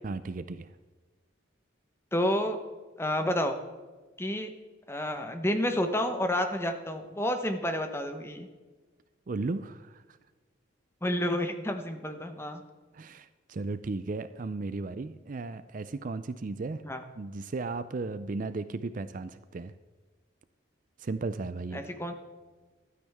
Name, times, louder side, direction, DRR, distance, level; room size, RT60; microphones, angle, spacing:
voice 1, 0.0-0.8 9.3-10.2 12.9-16.8 17.2-19.7 21.0-21.8, right 3 dB, 40° right, 13 dB, 0.4 m, -35 dB
voice 2, 2.1-2.6 3.0-3.6 4.2-4.5 4.9-8.5 11.0-12.6 16.8-17.0 21.7-22.1, left 1 dB, 10° left, 6 dB, 1.0 m, -30 dB
15.0 x 12.0 x 3.5 m, 1.3 s
head